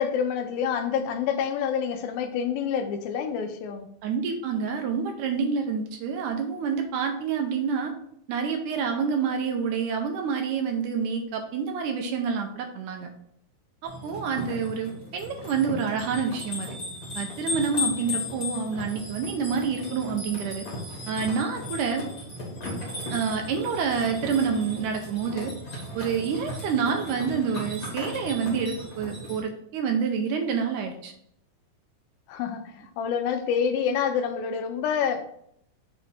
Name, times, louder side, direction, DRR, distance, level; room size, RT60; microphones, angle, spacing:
voice 1, 0.0-3.9 32.3-35.2, left 7 dB, 85° left, 7 dB, 2.5 m, -27 dB
voice 2, 4.0-7.9 8.3-13.1 13.8-16.7 17.2-20.7 21.1-22.1 23.1-25.5 25.9-31.1, right 6 dB, 75° right, 4 dB, 1.9 m, -28 dB
sound 1, 13.8-29.4, left 2 dB, 40° left, 1.3 m, -36 dB
7.1 x 3.2 x 4.2 m, 0.70 s
omnidirectional pair, 4.1 m